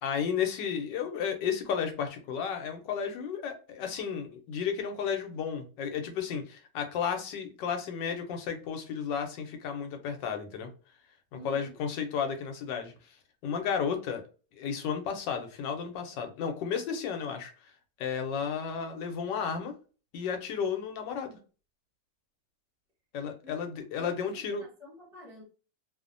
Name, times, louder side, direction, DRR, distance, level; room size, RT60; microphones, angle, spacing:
voice 1, 0.0-10.7 11.4-12.9 13.4-14.2 14.5-17.5 18.0-19.7 20.1-21.4 23.1-24.6, left 7 dB, 90° left, 1.3 m, -33 dB
voice 2, 11.3-11.8 23.4-23.6 23.9-25.4, equal, 5° right, 0.5 m, -49 dB
3.1 x 2.0 x 2.5 m
omnidirectional pair, 1.9 m